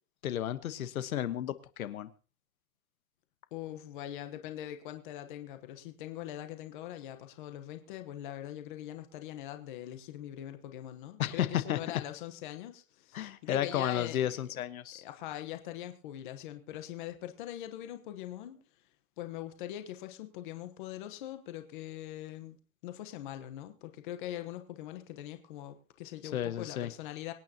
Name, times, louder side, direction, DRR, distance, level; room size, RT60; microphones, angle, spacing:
voice 1, 0.2-2.1 11.2-11.8 13.1-15.0 26.3-26.9, left 11 dB, 75° left, 12 dB, 1.3 m, -32 dB
voice 2, 3.5-14.4 15.0-18.6 19.2-22.6 22.8-27.3, left 12 dB, 35° left, 8 dB, 1.2 m, -42 dB
24.5 x 9.4 x 2.9 m, 0.37 s
supercardioid pair, 175°, 43 cm